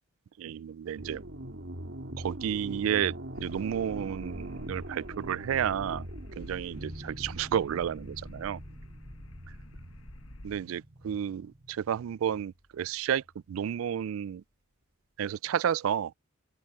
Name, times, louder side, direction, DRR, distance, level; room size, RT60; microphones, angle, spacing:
voice 1, 0.4-1.2 2.2-6.1 6.4-8.6 10.4-13.2 13.5-14.4 15.2-16.1, right 9 dB, 80° right, 0.3 m, -31 dB
sound 1, 1.0-12.5, right 1 dB, 60° right, 3.7 m, -43 dB
sound 2, 3.3-10.6, left 1 dB, 75° left, 1.6 m, -48 dB
sound 3, 6.7-12.3, right 1 dB, 25° right, 1.2 m, -51 dB
open air
head